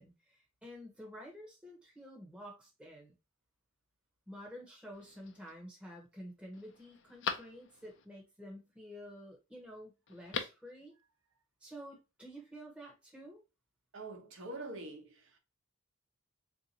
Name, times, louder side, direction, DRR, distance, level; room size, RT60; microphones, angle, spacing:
voice 1, 0.0-3.1 4.3-10.9 11.6-13.4, equal, 5° right, 0.9 m, -50 dB
Telephone, 4.9-5.5 6.1-6.2 6.5-8.1 10.1-10.7 11.0-11.1, left 6 dB, 60° left, 0.5 m, -41 dB
voice 2, 13.9-15.4, right 2 dB, 60° right, 0.9 m, -45 dB
3.7 x 2.7 x 2.9 m
head